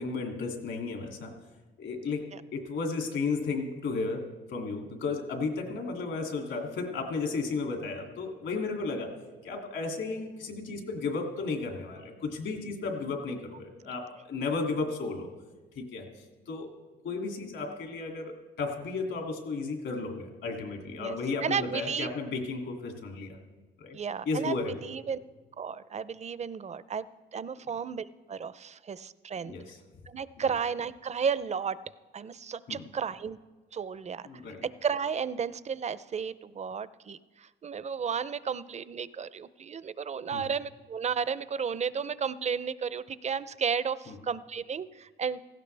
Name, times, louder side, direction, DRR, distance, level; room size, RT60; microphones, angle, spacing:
voice 1, 0.0-1.4 1.8-9.2 9.4-15.3 15.7-16.1 16.5-16.7 17.0-23.4 23.8-24.0 24.2-24.8 29.4-29.8 30.4-30.5 32.7-32.9 34.2-34.6 40.3-40.4 44.1-44.2, left 4 dB, 70° left, 2 dB, 2.6 m, -34 dB
voice 2, 21.4-22.1 23.9-24.5 24.8-25.2 25.6-29.6 30.1-31.8 32.1-33.4 33.7-34.3 34.6-45.4, right 6 dB, 35° right, 16 dB, 0.5 m, -33 dB
17.0 x 15.5 x 3.4 m, 1.3 s
cardioid pair, 90°, 20 cm